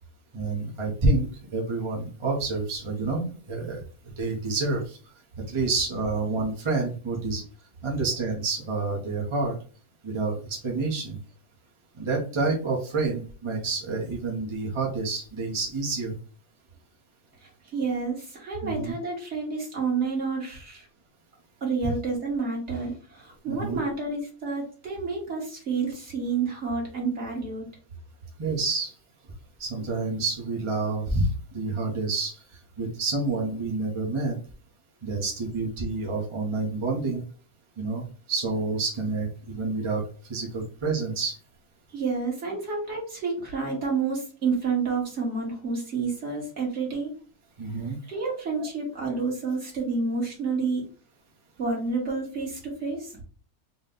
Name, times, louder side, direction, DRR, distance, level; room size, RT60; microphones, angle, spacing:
voice 1, 0.3-5.0 5.5-7.4 7.8-9.5 10.0-11.2 12.0-16.1 18.6-18.9 23.5-23.8 28.4-28.9 29.6-32.3 32.8-34.4 35.0-37.2 37.8-40.0 40.3-41.3 47.6-48.0, right 3 dB, 25° right, -2 dB, 0.7 m, -28 dB
voice 2, 17.4-20.9 21.6-27.7 41.9-47.1 48.1-50.8 51.6-53.2, right 4 dB, 50° right, -2 dB, 1.6 m, -29 dB
4.1 x 2.2 x 3.6 m, 0.38 s
omnidirectional pair, 1.5 m